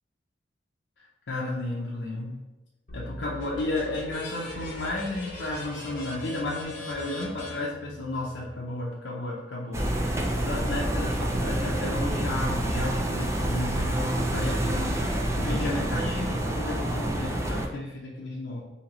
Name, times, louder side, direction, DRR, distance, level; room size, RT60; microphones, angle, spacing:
voice 1, 1.3-2.4 2.9-15.0 15.4-18.6, left 2 dB, 80° left, -4 dB, 0.6 m, -33 dB
sound 1, 2.9-8.5, left 1 dB, 45° left, 0.9 m, -40 dB
sound 2, 9.7-17.7, right 1 dB, 15° right, 0.4 m, -28 dB
3.0 x 2.8 x 3.9 m, 1.1 s
head